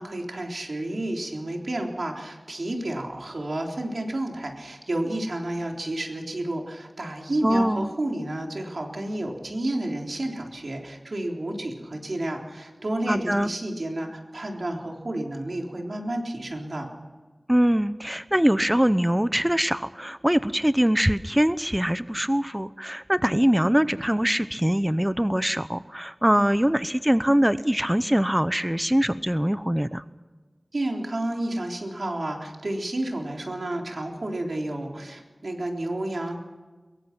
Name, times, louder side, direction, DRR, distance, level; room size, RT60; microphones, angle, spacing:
voice 1, 0.0-16.9 30.7-36.4, right 1 dB, 85° right, 1 dB, 3.7 m, -31 dB
voice 2, 7.4-7.9 13.1-13.5 17.5-30.0, equal, 15° right, 13 dB, 0.7 m, -23 dB
23.5 x 22.0 x 6.1 m, 1.3 s
wide cardioid pair, 50°, 0 cm